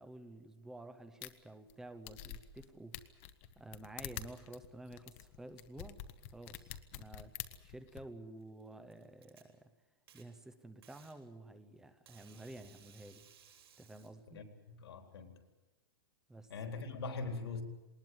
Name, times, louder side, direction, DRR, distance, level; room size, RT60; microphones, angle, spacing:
voice 1, 0.0-3.1 3.6-6.0 6.3-7.3 7.6-9.7 10.1-13.2 13.8-14.4 16.3-16.5, right 1 dB, 5° right, 0.7 m, -51 dB
sound 1, 1.2-1.3 1.7-1.8 2.1-2.6 2.9-8.0, left 12 dB, 30° left, 0.9 m, -47 dB
Packing tape duct tape, 8.4-9.4 10.1-10.2 10.8-11.2 12.1-14.1, right 8 dB, 80° right, 7.5 m, -61 dB
voice 2, 14.3-15.3 16.5-17.6, left 4 dB, 90° left, 3.9 m, -42 dB
20.0 x 19.5 x 9.5 m
supercardioid pair, 180°, 13 cm